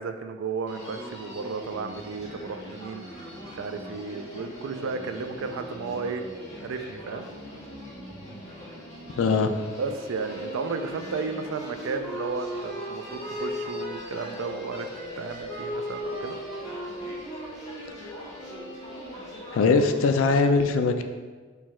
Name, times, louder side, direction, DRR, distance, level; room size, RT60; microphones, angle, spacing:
voice 1, 0.0-6.2 6.6-7.3 9.8-14.9 15.2-16.4, right 4 dB, 70° right, 8 dB, 0.3 m, -33 dB
Human voice, 0.7-20.5, equal, 35° left, 1.4 m, -42 dB
voice 2, 9.2-9.5 19.5-21.0, left 4 dB, 70° left, 7 dB, 0.4 m, -21 dB
sound 1, 10.2-19.4, equal, 5° right, 1.1 m, -37 dB
4.6 x 2.3 x 4.2 m, 1.4 s
head